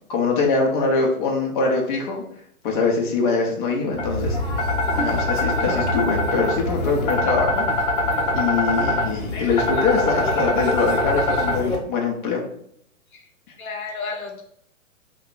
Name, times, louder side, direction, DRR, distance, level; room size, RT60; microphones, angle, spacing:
voice 1, 0.1-2.2 2.6-4.4 4.9-7.7 8.3-12.4, left 4 dB, 35° left, 0 dB, 0.8 m, -23 dB
sound 1, 3.9-11.7, left 1 dB, 55° left, 1.1 m, -23 dB
voice 2, 13.6-14.4, left 2 dB, 80° left, 2 dB, 0.9 m, -31 dB
2.7 x 2.3 x 3.9 m, 0.68 s
figure-of-eight pair, 120°, 42 cm